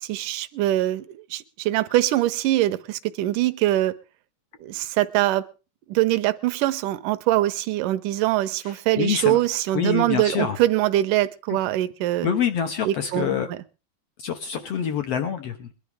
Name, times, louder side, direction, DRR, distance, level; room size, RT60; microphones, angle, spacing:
voice 1, 0.0-4.0 4.6-5.4 5.9-12.3 12.8-13.6, right 15 dB, 75° right, 11 dB, 2.2 m, -23 dB
voice 2, 8.6-9.4 9.7-10.6 11.5-11.6 12.2-13.5 14.2-15.7, left 7 dB, 70° left, 7 dB, 1.5 m, -26 dB
21.5 x 11.0 x 3.6 m, 0.33 s
omnidirectional pair, 4.2 m